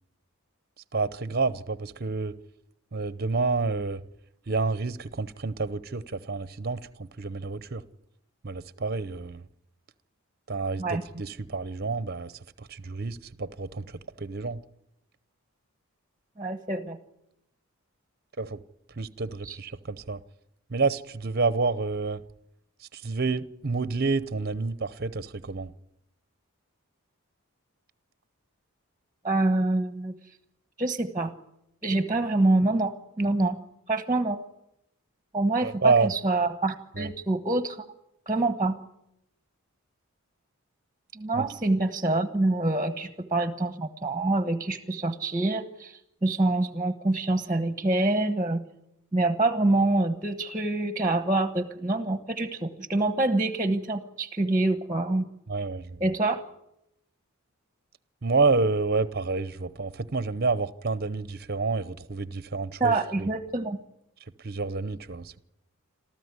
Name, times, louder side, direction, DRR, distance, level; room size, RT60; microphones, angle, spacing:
voice 1, 0.9-2.4 2.9-4.0 4.5-7.8 8.4-9.5 10.5-14.6 18.4-18.6 19.0-20.2 20.7-22.2 22.8-25.7 35.6-36.1 36.9-37.1 41.3-41.5 55.5-56.0 58.2-63.3 64.4-65.4, right 3 dB, 45° right, 0.8 m, -29 dB
voice 2, 16.4-17.0 19.4-19.6 29.2-30.1 30.8-31.3 31.8-33.6 33.9-34.4 35.3-37.9 38.3-38.8 41.1-48.6 49.1-55.3 56.0-56.4 62.8-63.8, right 2 dB, 15° right, 1.2 m, -26 dB
27.0 x 14.5 x 9.7 m
head